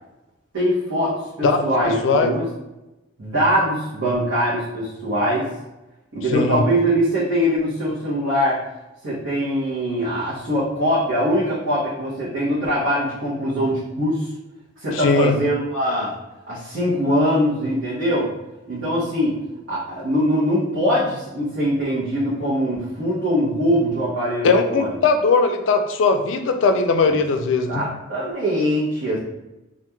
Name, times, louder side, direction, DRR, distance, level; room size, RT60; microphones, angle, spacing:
voice 1, 0.5-2.4 3.2-5.4 6.1-8.6 9.0-14.3 14.8-16.1 16.5-18.3 18.7-19.3 19.7-24.9 27.1-27.2 27.7-29.2, equal, 80° right, -10 dB, 0.9 m, -22 dB
voice 2, 6.3-6.6 14.9-15.4 24.4-27.8, left 4 dB, 75° left, 6 dB, 0.3 m, -19 dB
2.9 x 2.4 x 2.3 m, 0.98 s
head